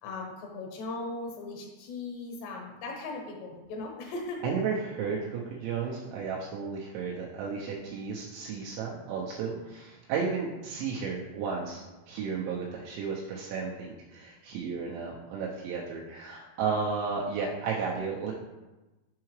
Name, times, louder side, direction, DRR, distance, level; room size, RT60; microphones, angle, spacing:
voice 1, 0.0-4.4, left 3 dB, 70° left, 0 dB, 2.9 m, -38 dB
voice 2, 4.4-18.3, right 5 dB, 90° right, -4 dB, 2.7 m, -33 dB
7.2 x 4.7 x 3.1 m, 1.1 s
omnidirectional pair, 5.9 m